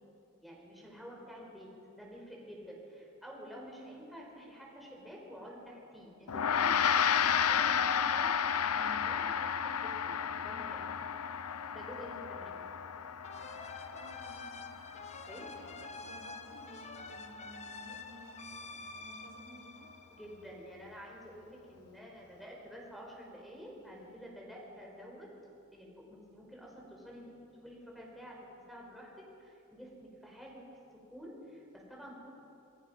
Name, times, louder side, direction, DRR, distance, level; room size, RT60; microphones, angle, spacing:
voice 1, 0.4-10.9 11.7-12.6 15.2-15.4 20.1-25.3 25.7-30.6 30.9-32.3, equal, ahead, -3 dB, 5.4 m, -49 dB
Gong, 6.3-15.8, left 8 dB, 85° left, 0.7 m, -32 dB
voice 2, 12.0-12.3 13.9-14.5 15.3-19.9, right 1 dB, 80° right, 1 dB, 4.6 m, -54 dB
sound 1, 13.2-20.7, left 3 dB, 30° left, 1.3 m, -48 dB
27.5 x 23.0 x 5.9 m, 2.8 s
head